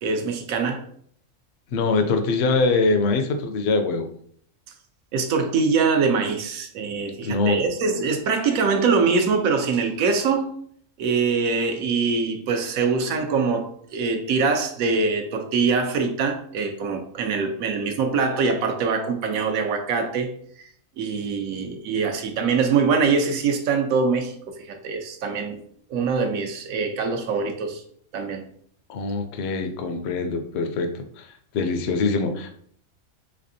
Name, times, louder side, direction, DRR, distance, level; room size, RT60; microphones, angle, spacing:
voice 1, 0.0-0.8 5.1-10.5 11.0-20.3 20.6-20.7 21.0-25.6 25.9-27.8 28.1-28.4, right 5 dB, 80° right, 5 dB, 1.1 m, -23 dB
voice 2, 1.7-4.1 7.2-7.6 28.9-31.3 31.5-32.5, left 3 dB, 65° left, 6 dB, 0.7 m, -23 dB
3.4 x 3.3 x 2.6 m, 0.62 s
omnidirectional pair, 1.4 m